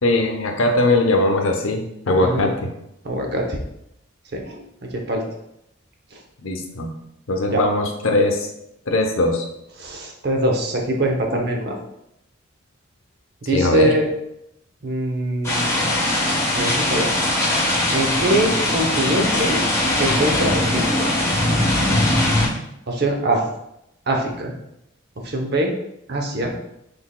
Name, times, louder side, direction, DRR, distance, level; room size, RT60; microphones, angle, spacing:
voice 1, 0.0-2.5 6.4-6.9 7.3-8.4 8.9-9.4 13.5-13.9, left 2 dB, 85° left, 3 dB, 0.7 m, -20 dB
voice 2, 2.2-2.5 3.0-3.6 4.3-4.6 4.9-5.2 7.5-7.6 9.8-11.8 13.4-14.1 14.8-15.7 16.5-17.1 17.9-19.6 19.9-21.1 22.9-23.5 24.1-24.5 25.2-25.7 26.1-26.5, right 1 dB, 50° right, 2 dB, 0.7 m, -23 dB
sound 1, 15.4-22.5, left 1 dB, 15° left, 1.0 m, -20 dB
6.0 x 3.4 x 2.2 m, 0.81 s
head